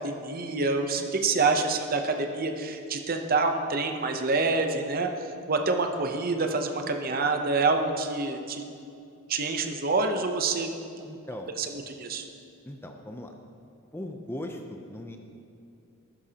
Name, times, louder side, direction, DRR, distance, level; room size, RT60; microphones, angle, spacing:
voice 1, 0.0-5.1 5.5-8.6 9.3-11.1 11.6-12.2, right 3 dB, 40° right, 5 dB, 0.7 m, -27 dB
voice 2, 11.0-11.5 12.6-13.3 13.9-15.2, left 1 dB, 10° left, 4 dB, 0.5 m, -38 dB
14.0 x 12.0 x 2.9 m, 2.5 s
head